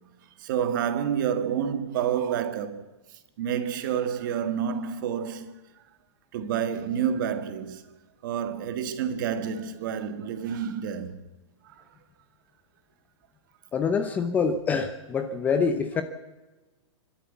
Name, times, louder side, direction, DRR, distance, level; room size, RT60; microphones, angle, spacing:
voice 1, 0.4-2.8 3.4-5.6 6.3-7.8 8.2-11.2 11.6-11.8, right 8 dB, 40° right, 1.8 m, -29 dB
voice 2, 13.7-16.0, left 5 dB, 10° left, 0.7 m, -25 dB
25.5 x 12.5 x 8.3 m
hypercardioid pair, 170°, 16 cm